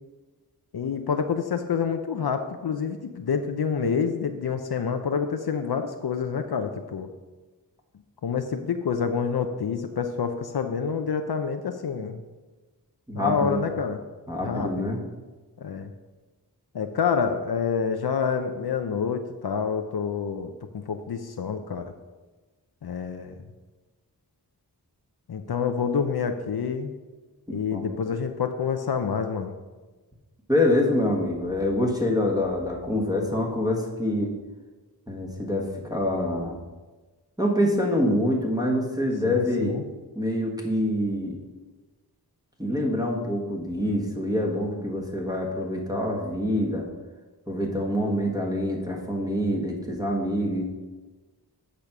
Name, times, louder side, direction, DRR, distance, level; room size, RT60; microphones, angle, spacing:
voice 1, 0.7-7.1 8.2-12.2 13.1-14.0 14.4-14.9 15.6-15.9 16.7-21.9 22.8-23.3 25.3-26.9 27.5-29.6 39.2-39.8, left 6 dB, 65° left, 7 dB, 0.6 m, -28 dB
voice 2, 13.1-13.6 14.3-15.0 27.5-27.8 30.5-34.3 35.1-36.6 37.4-39.8 40.1-41.4 42.6-46.9 47.5-50.7, left 1 dB, 10° right, -3 dB, 1.4 m, -26 dB
8.5 x 5.2 x 5.9 m, 1.3 s
wide cardioid pair, 65°, 40 cm